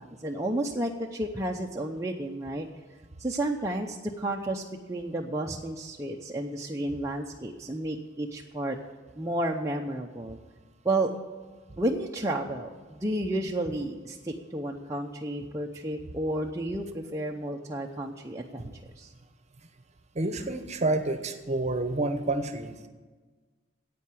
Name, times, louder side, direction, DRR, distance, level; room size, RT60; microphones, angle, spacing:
voice 1, 0.0-2.7 3.2-4.6 4.9-8.8 9.2-10.4 10.8-11.1 11.8-18.6 19.0-19.1, right 1 dB, 15° right, -1 dB, 0.7 m, -31 dB
voice 2, 20.1-22.9, right 2 dB, 35° right, 8 dB, 1.0 m, -29 dB
10.5 x 8.5 x 8.4 m, 1.4 s
head